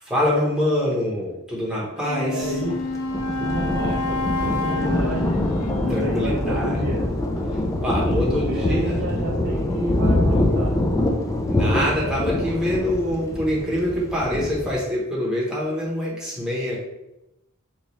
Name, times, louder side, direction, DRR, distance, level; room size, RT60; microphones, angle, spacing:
voice 1, 0.0-2.6 5.9-6.8 7.8-9.0 11.5-16.8, left 1 dB, 5° right, -7 dB, 0.8 m, -25 dB
Wind instrument woodwind instrument, 2.0-6.9, left 3 dB, 80° left, 0.4 m, -29 dB
voice 2, 2.2-2.8 3.4-5.4 5.8-7.1 8.0-10.8, right 2 dB, 50° right, -4 dB, 0.5 m, -30 dB
Thunder, 2.4-14.7, left 1 dB, 15° left, 0.3 m, -24 dB
3.0 x 2.3 x 4.0 m, 0.92 s
head